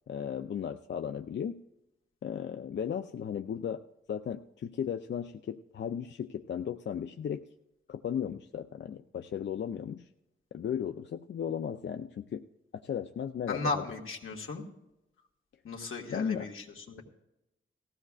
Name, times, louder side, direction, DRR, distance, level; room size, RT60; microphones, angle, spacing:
voice 1, 0.1-1.6 2.2-3.8 4.1-7.4 7.9-10.1 10.5-12.4 12.7-13.8 16.1-16.5, left 8 dB, 60° left, 6 dB, 0.5 m, -35 dB
voice 2, 13.5-14.6 15.6-17.0, left 3 dB, 80° left, 0 dB, 1.8 m, -36 dB
18.0 x 15.0 x 2.4 m, 0.90 s
wide cardioid pair, 90°, 21 cm